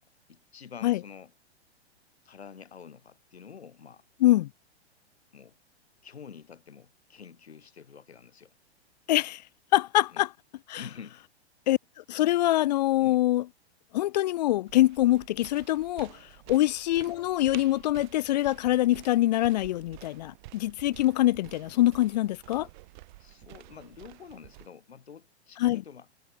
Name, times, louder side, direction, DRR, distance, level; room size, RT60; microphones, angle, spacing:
voice 1, 0.3-1.3 2.2-4.1 5.3-5.6 6.0-8.6 10.1-10.2 10.8-11.2 13.0-13.2 16.5-16.6 23.2-26.1, left 7 dB, 70° left, 2.3 m, -48 dB
voice 2, 9.1-9.4 9.7-10.3 10.7-10.8 11.7-11.8 12.1-13.4 13.9-16.2 16.5-22.7 25.6-25.8, left 15 dB, 40° left, 0.5 m, -24 dB
sound 1, 14.7-24.7, right 20 dB, 45° right, 4.1 m, -50 dB
figure-of-eight pair, 105°, 33 cm